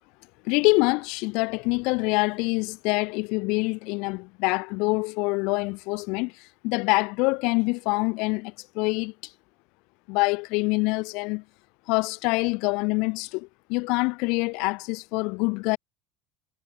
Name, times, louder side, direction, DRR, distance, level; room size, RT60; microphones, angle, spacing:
voice 1, 0.4-9.3 10.1-11.4 11.9-15.8, left 28 dB, 70° left, 7.2 m, -25 dB
cardioid pair, 130°, 0 cm